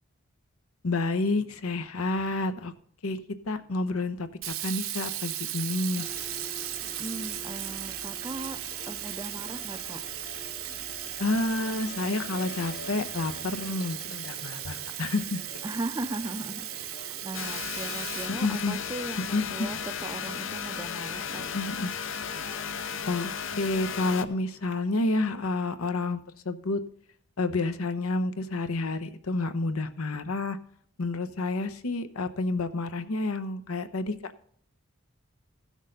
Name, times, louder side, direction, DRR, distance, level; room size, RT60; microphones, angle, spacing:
voice 1, 0.8-2.7 3.0-3.2 3.5-6.0 11.2-15.4 18.3-18.7 19.3-19.7 21.5-21.9 23.1-26.8 27.4-30.6 31.0-34.5, left 2 dB, 85° left, 11 dB, 0.9 m, -29 dB
Sink (filling or washing), 4.4-19.2, right 12 dB, 70° right, 0.8 m, -37 dB
sound 1, 5.9-23.1, left 2 dB, 45° left, 1.0 m, -47 dB
voice 2, 6.8-8.6 8.9-10.0 15.6-19.8 20.0-21.5, right 2 dB, 15° right, 10 dB, 0.4 m, -38 dB
sound 2, 17.3-24.2, left 7 dB, 65° left, 0.7 m, -35 dB
15.5 x 6.4 x 3.9 m, 0.63 s
head